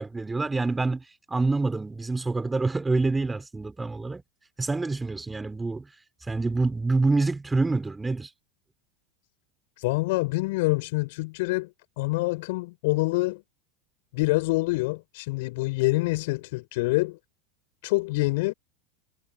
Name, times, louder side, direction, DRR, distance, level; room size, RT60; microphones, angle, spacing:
voice 1, 0.0-4.2 4.6-5.9 6.3-8.3, right 3 dB, 10° right, 3.5 m, -26 dB
voice 2, 9.8-11.7 12.0-13.4 14.1-17.2 17.8-18.5, left 23 dB, 55° left, 6.4 m, -26 dB
figure-of-eight pair, 85°, 0 cm